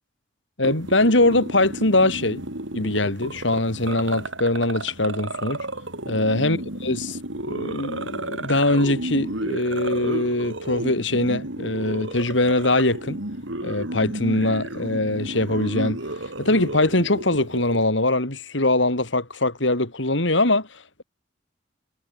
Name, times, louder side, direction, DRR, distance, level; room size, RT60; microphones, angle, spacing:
voice 1, 0.6-2.4 2.7-5.6 6.1-7.2 7.5-13.2 13.6-16.0 16.4-21.0, left 2 dB, 70° left, 4.1 m, -22 dB
sound 1, 0.6-17.8, right 1 dB, 75° right, 6.3 m, -32 dB
head